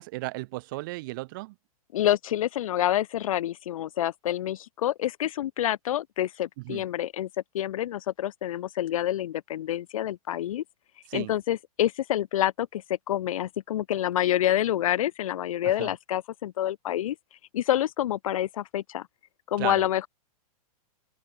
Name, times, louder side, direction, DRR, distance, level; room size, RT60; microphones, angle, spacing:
voice 1, 0.0-1.5 6.6-6.8 11.1-11.3 15.6-15.9 19.6-19.8, right 22 dB, 35° right, 0.6 m, -35 dB
voice 2, 1.9-7.3 7.5-10.6 11.1-17.2 17.5-19.1 19.5-20.1, left 12 dB, 60° left, 2.2 m, -27 dB
open air
hypercardioid pair, 160°, 19 cm